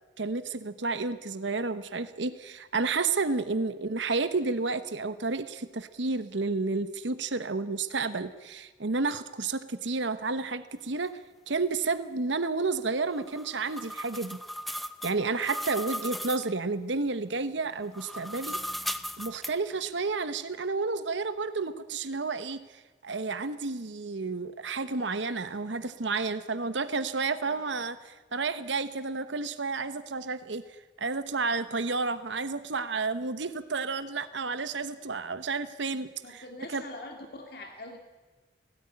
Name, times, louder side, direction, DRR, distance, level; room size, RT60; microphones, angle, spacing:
voice 1, 0.2-11.2 11.5-14.4 15.0-18.6 19.2-30.6 31.0-36.4 36.7-36.8, right 3 dB, 75° right, 12 dB, 1.0 m, -31 dB
sound 1, 13.2-16.5 17.9-19.5, equal, ahead, 0.6 m, -37 dB
voice 2, 27.4-27.9 36.2-38.0, left 2 dB, 55° left, 3 dB, 2.4 m, -44 dB
18.0 x 17.0 x 9.9 m, 1.2 s
head